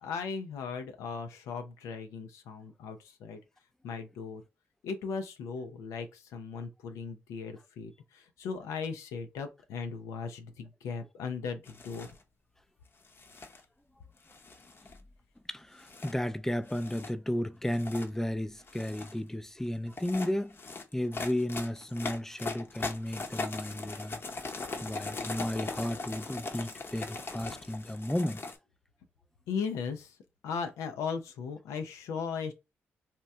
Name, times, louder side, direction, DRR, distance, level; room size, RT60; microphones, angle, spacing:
voice 1, 0.0-3.4 3.8-4.4 4.8-12.1 29.5-30.2 30.4-32.5, left 5 dB, 85° left, 0.4 m, -37 dB
sound 1, 11.7-12.2 13.0-13.6 14.3-15.1 15.8-16.1 16.7-17.1 17.6-18.1 18.6-19.2 19.9-28.6, left 3 dB, 45° left, 0.7 m, -40 dB
voice 2, 15.5-20.6 20.9-24.2 24.8-28.4, left 1 dB, 10° left, 0.4 m, -33 dB
2.8 x 2.2 x 3.3 m
supercardioid pair, 50°, 5 cm